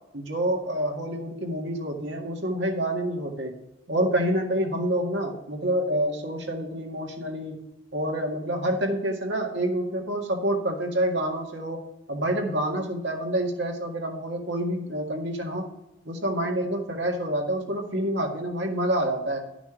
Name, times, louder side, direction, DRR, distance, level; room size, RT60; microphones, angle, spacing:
voice 1, 0.1-3.5 3.9-7.6 7.9-11.8 12.1-15.7 16.1-19.4, right 1 dB, 65° right, 2 dB, 1.9 m, -27 dB
11.5 x 6.1 x 4.8 m, 0.93 s
head